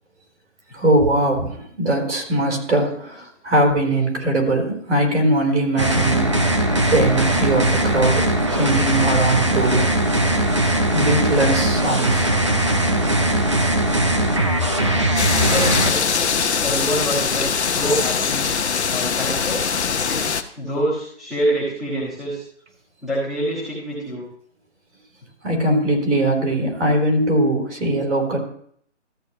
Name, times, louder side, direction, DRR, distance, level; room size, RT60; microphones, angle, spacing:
voice 1, 0.7-6.3 6.9-9.9 10.9-12.3 13.0-13.1 25.4-28.4, right 1 dB, 70° right, 1 dB, 3.8 m, -20 dB
sound 1, 5.8-15.9, right 1 dB, 25° right, 0.6 m, -19 dB
sound 2, 15.2-20.4, left 6 dB, 65° left, 0.9 m, -22 dB
voice 2, 15.3-18.5 18.9-19.6 20.0-22.4 23.0-24.3, right 1 dB, ahead, -13 dB, 1.4 m, -26 dB
13.5 x 9.0 x 3.0 m, 0.63 s
hypercardioid pair, 170°, 35 cm